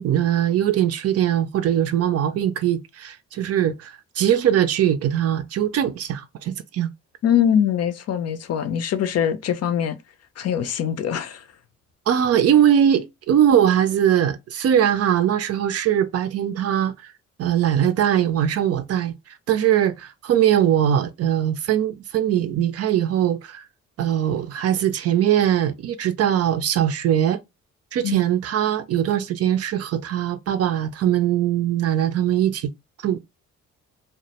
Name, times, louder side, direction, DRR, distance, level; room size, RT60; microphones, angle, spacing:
voice 1, 0.0-6.9 12.1-16.9 17.4-19.1 19.5-23.6 24.0-27.4 27.9-32.7 33.0-33.2, right 10 dB, 50° right, 0.4 m, -21 dB
voice 2, 7.2-10.0 10.4-11.4 28.0-28.2, left 9 dB, 50° left, 0.5 m, -22 dB
2.1 x 2.1 x 2.8 m
supercardioid pair, 60°, 33 cm